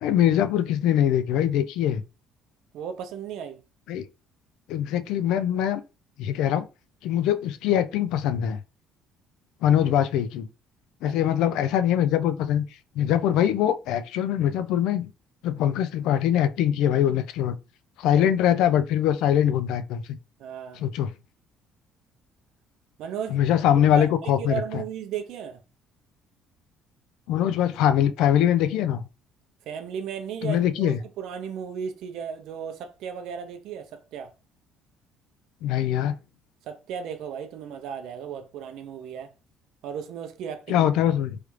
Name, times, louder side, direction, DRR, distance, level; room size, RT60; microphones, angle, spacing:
voice 1, 0.0-2.0 3.9-4.1 4.7-5.8 6.2-6.7 7.0-8.6 9.6-10.5 11.0-12.6 13.0-15.1 15.4-17.6 18.0-20.2 20.8-21.1 23.3-24.8 27.3-29.1 30.4-31.0 35.6-36.2 40.7-41.4, left 10 dB, 70° left, 0.3 m, -23 dB
voice 2, 2.7-3.6 11.0-11.1 18.0-18.3 20.4-20.8 23.0-23.4 23.9-25.6 29.7-34.3 36.6-39.3 39.8-40.9, right 8 dB, 60° right, 0.5 m, -35 dB
3.2 x 2.4 x 3.1 m
cardioid pair, 170°, 0 cm